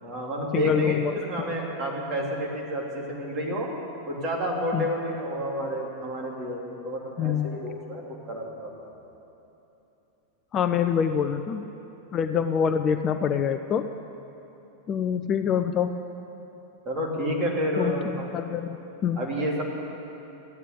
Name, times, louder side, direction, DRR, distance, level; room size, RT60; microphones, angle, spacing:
voice 1, 0.0-3.7 4.0-8.9 16.8-18.3 19.2-19.6, equal, 30° right, -2 dB, 2.9 m, -30 dB
voice 2, 0.5-1.5 4.7-4.9 7.2-7.5 10.5-11.7 12.1-13.8 14.9-16.0 17.8-17.9 18.3-18.8 19.0-19.2, left 7 dB, 30° left, 8 dB, 0.5 m, -25 dB
14.5 x 9.2 x 8.4 m, 3.0 s
figure-of-eight pair, 90°, 0 cm